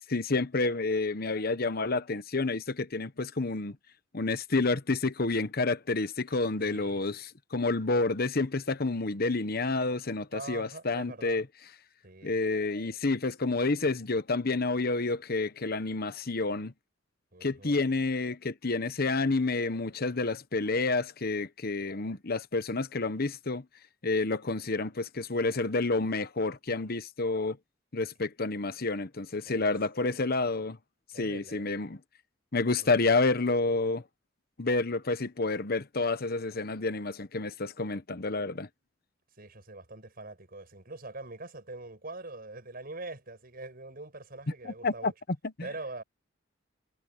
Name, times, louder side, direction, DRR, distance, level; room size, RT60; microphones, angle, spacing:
voice 1, 0.1-3.8 4.1-7.2 7.5-11.4 12.2-16.7 17.4-23.6 24.0-27.6 27.9-30.8 31.2-32.0 32.5-34.0 34.6-38.7 44.6-45.1 45.6-45.7, left 3 dB, 55° left, 1.1 m, -29 dB
voice 2, 6.6-7.1 10.3-11.5 12.0-12.4 17.3-17.8 29.4-30.5 31.1-31.7 32.8-32.9 39.4-45.1 45.6-46.0, right 2 dB, 50° right, 6.7 m, -44 dB
head